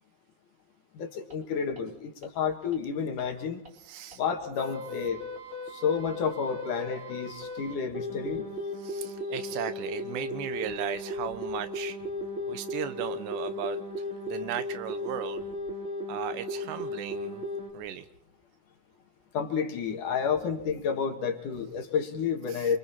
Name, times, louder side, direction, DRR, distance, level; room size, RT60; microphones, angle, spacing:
voice 1, 0.9-3.6 4.2-5.2 5.7-8.4 19.3-22.8, left 6 dB, 60° left, 5 dB, 2.9 m, -30 dB
sound 1, 1.3-1.4 1.8-1.9 2.2-2.3 2.7-2.8 3.2-3.3 3.7-3.8 4.1-4.2 4.6-17.7, left 1 dB, 15° right, 3.3 m, -36 dB
voice 2, 3.7-4.2 8.8-12.0 12.5-15.4 16.1-17.5 17.7-18.1 22.5-22.7, right 10 dB, 90° right, 12 dB, 3.4 m, -37 dB
28.0 x 24.0 x 4.3 m, 0.71 s
omnidirectional pair, 4.8 m